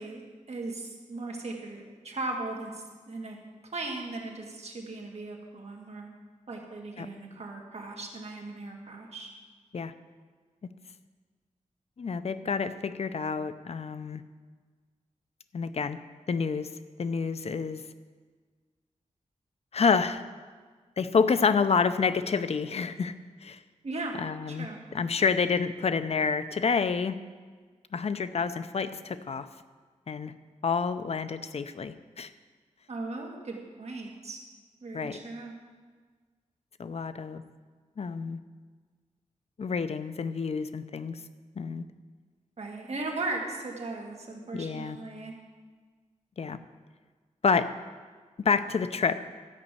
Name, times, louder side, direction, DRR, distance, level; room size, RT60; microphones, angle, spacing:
voice 1, 0.0-3.4 3.7-6.1 6.5-9.3 23.8-24.2 24.5-24.8 32.9-34.4 34.8-35.6 42.6-45.3, right 2 dB, 55° right, 0 dB, 2.0 m, -37 dB
voice 2, 12.0-14.2 15.5-16.0 16.3-16.7 17.0-17.8 19.7-20.2 21.0-23.1 23.4-23.6 24.2-27.2 27.9-29.5 30.1-30.3 30.6-32.3 34.9-35.2 36.8-37.4 38.0-38.4 39.6-41.2 41.6-41.8 44.5-45.0 46.4-46.6 47.4-47.7 48.4-49.2, left 5 dB, 50° left, 11 dB, 0.6 m, -28 dB
13.0 x 5.3 x 8.3 m, 1.5 s
wide cardioid pair, 110°, 13 cm